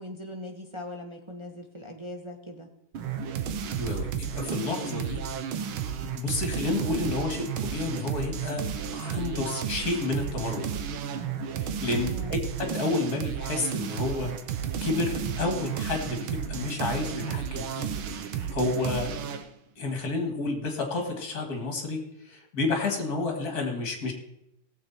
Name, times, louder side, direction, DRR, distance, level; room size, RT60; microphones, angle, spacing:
voice 1, 0.0-2.7 11.9-12.4, left 1 dB, 45° right, 1 dB, 0.3 m, -40 dB
sound 1, 2.9-19.5, right 7 dB, 75° right, 1.7 m, -32 dB
voice 2, 3.8-5.2 5.5-5.7 6.1-8.6 8.9-10.6 11.6-14.3 14.8-17.9 18.2-19.1 19.8-22.0 22.3-24.1, left 3 dB, 45° left, 4 dB, 2.6 m, -30 dB
18.0 x 7.7 x 4.3 m, 0.81 s
omnidirectional pair, 2.3 m